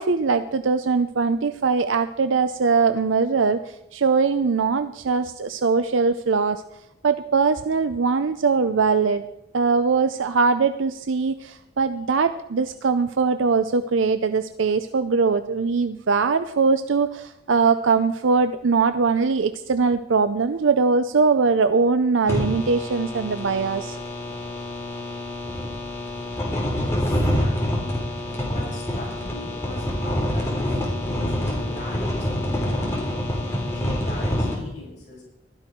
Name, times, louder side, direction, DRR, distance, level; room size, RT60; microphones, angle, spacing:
voice 1, 0.0-6.6 7.0-9.2 9.5-24.0, right 4 dB, 90° right, 10 dB, 0.6 m, -21 dB
sound 1, 22.3-34.5, left 1 dB, 15° left, 3.4 m, -26 dB
voice 2, 26.8-28.0 28.3-35.2, left 1 dB, 40° left, -6 dB, 7.1 m, -39 dB
15.5 x 12.5 x 4.6 m, 0.87 s
head